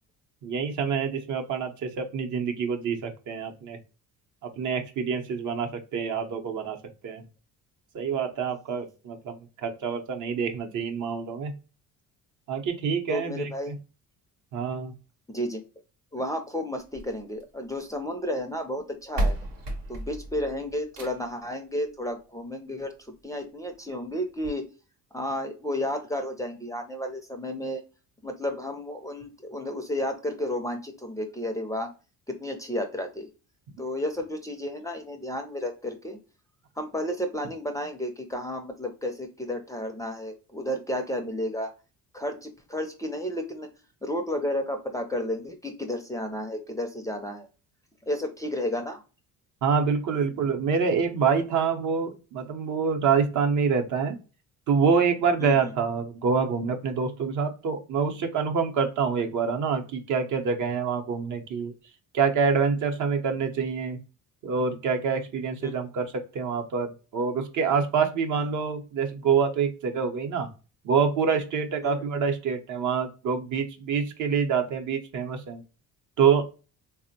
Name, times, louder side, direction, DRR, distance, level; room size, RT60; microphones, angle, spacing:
voice 1, 0.4-3.8 4.4-6.8 7.0-7.2 7.9-11.5 12.5-13.8 14.5-14.9 33.7-33.8 49.6-54.2 54.7-61.7 62.1-64.0 64.4-70.5 70.8-75.6 76.2-76.4, right 6 dB, 60° right, 5 dB, 0.7 m, -26 dB
voice 2, 13.1-13.7 15.3-15.6 16.1-19.4 19.9-22.9 23.2-24.6 25.1-27.8 28.2-31.9 32.3-33.3 33.8-36.2 36.8-41.7 42.1-43.7 44.0-47.5 48.1-49.0 55.4-55.7 65.6-65.7 68.3-68.5 71.8-72.0, left 1 dB, 10° left, 4 dB, 0.4 m, -32 dB
sound 1, 16.8-18.0 18.8-18.9 19.1-21.4 22.8-22.9 23.4-23.5 23.7-23.8 24.4-24.5, right 1 dB, 90° right, 0.9 m, -32 dB
3.5 x 2.1 x 2.6 m, 0.33 s
cardioid pair, 110°, 34 cm